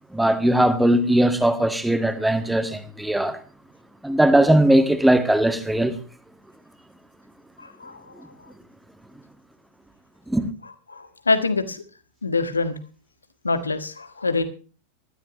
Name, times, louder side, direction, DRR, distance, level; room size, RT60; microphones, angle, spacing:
voice 1, 0.1-3.4 4.0-5.9 10.3-10.4, right 1 dB, 5° right, 1.7 m, -19 dB
voice 2, 7.6-8.3 10.9-11.8 12.2-12.7 13.4-14.4, left 3 dB, 75° left, 1.7 m, -25 dB
19.5 x 13.5 x 3.0 m
figure-of-eight pair, 90°, 0 cm